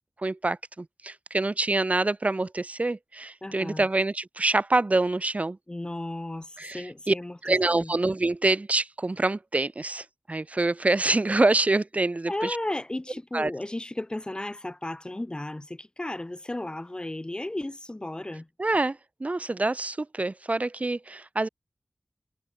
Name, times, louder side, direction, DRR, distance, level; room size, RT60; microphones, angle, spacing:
voice 1, 0.2-5.6 6.6-7.1 7.4-12.6 13.3-13.5 18.6-21.5, right 2 dB, 45° right, 2.0 m, -26 dB
voice 2, 3.4-3.9 5.7-7.4 7.7-7.9 12.3-18.5, left 1 dB, 25° left, 2.0 m, -34 dB
wide cardioid pair, 70°, 3 cm